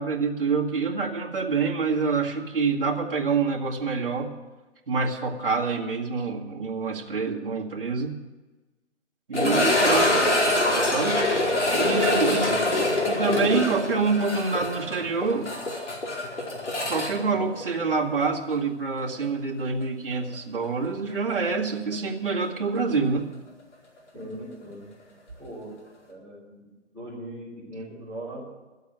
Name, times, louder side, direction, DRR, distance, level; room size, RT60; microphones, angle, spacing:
voice 1, 0.0-4.3 4.9-8.1 9.3-10.1 10.7-11.2 11.7-12.5 13.0-15.5 16.9-23.3, right 4 dB, 50° right, -2 dB, 2.2 m, -26 dB
sound 1, 9.3-18.3 18.5-18.6 19.2-19.3 21.9-22.0, left 1 dB, 80° left, 4.7 m, -24 dB
voice 2, 10.0-10.4 12.4-12.6 24.1-24.4 24.6-24.9 25.4-25.7 26.1-26.6 26.9-28.4, equal, 5° left, -14 dB, 2.0 m, -39 dB
12.5 x 8.2 x 9.1 m, 1.2 s
hypercardioid pair, 175°, 35 cm